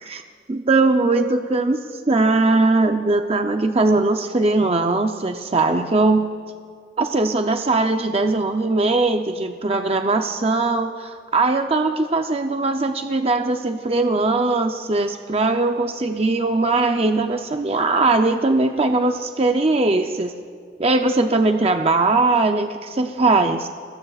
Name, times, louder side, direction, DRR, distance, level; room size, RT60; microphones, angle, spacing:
voice 1, 0.5-6.3 7.0-20.3 20.8-23.7, right 3 dB, 35° right, 5 dB, 0.6 m, -20 dB
27.5 x 21.5 x 2.4 m, 2.1 s
head